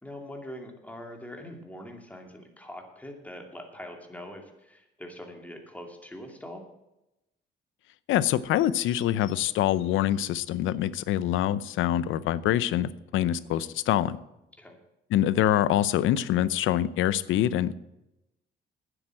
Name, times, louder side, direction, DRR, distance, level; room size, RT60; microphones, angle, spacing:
voice 1, 0.0-6.7 14.6-14.8, left 1 dB, 5° left, 3 dB, 2.6 m, -43 dB
voice 2, 8.1-14.2 15.1-17.7, left 12 dB, 85° left, 17 dB, 0.6 m, -25 dB
9.8 x 8.0 x 8.9 m, 0.91 s
cardioid pair, 90°, 20 cm